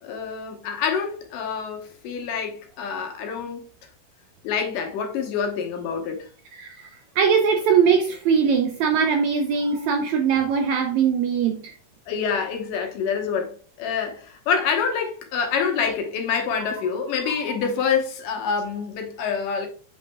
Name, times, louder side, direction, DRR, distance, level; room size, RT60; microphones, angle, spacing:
voice 1, 0.0-3.6 4.4-6.3 12.1-19.7, left 6 dB, 70° left, 2.6 m, -26 dB
voice 2, 6.5-6.9 7.2-11.7, right 6 dB, 75° right, 1.7 m, -21 dB
8.3 x 5.8 x 2.3 m
omnidirectional pair, 4.0 m